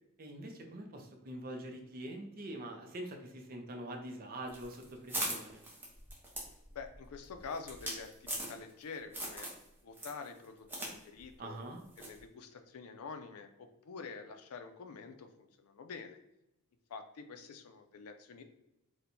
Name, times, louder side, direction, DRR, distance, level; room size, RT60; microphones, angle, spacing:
voice 1, 0.2-5.6 11.4-11.8, right 1 dB, 40° right, 3 dB, 0.5 m, -44 dB
sound 1, 4.5-8.8 9.1-9.6 9.9-10.9 11.2-11.3 12.0-12.2, right 1 dB, 10° right, 0.7 m, -40 dB
voice 2, 6.7-9.5 9.8-11.6 12.0-16.2 16.9-18.4, left 5 dB, 80° left, 7 dB, 0.4 m, -47 dB
4.3 x 2.2 x 2.6 m, 0.87 s
head